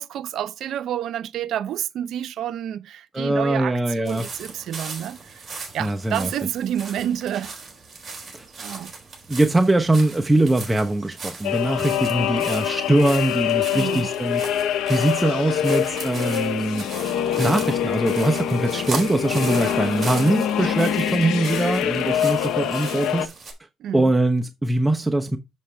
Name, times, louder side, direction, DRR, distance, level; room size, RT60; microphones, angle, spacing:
voice 1, 0.0-5.4 5.7-7.6 8.6-8.9 13.7-14.1 23.8-24.1, right 10 dB, 75° right, 0.7 m, -29 dB
voice 2, 3.1-4.3 5.8-6.3 8.3-8.4 9.3-14.4 14.9-16.9 17.4-23.3 23.9-25.4, right 1 dB, 10° right, 0.9 m, -22 dB
sound 1, 4.1-23.5, right 4 dB, 35° right, 4.3 m, -38 dB
sound 2, 11.4-23.3, left 10 dB, 90° left, 0.8 m, -25 dB
7.3 x 7.2 x 3.4 m
cardioid pair, 90°, 0 cm